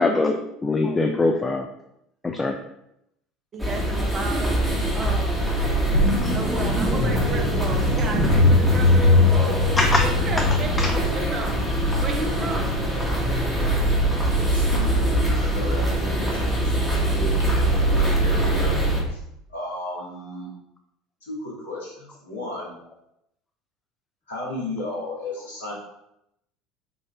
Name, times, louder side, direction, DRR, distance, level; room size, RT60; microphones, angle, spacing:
voice 1, 0.0-1.7 2.2-2.6 9.8-10.0 10.4-10.5 10.8-10.9, left 2 dB, 20° left, 3 dB, 0.3 m, -22 dB
voice 2, 3.5-4.6 4.9-5.5 6.3-9.6 10.0-11.6 12.0-12.7, right 3 dB, 35° right, 2 dB, 0.7 m, -33 dB
sound 1, 3.6-19.0, right 1 dB, ahead, 1.1 m, -23 dB
sound 2, 5.9-10.9, left 2 dB, 70° right, 1.4 m, -21 dB
voice 3, 14.3-18.7 19.1-19.2 19.5-20.5 21.2-22.8 24.3-25.7, left 1 dB, 80° left, -4 dB, 1.2 m, -34 dB
3.9 x 2.5 x 3.3 m, 0.80 s
figure-of-eight pair, 70°, 0 cm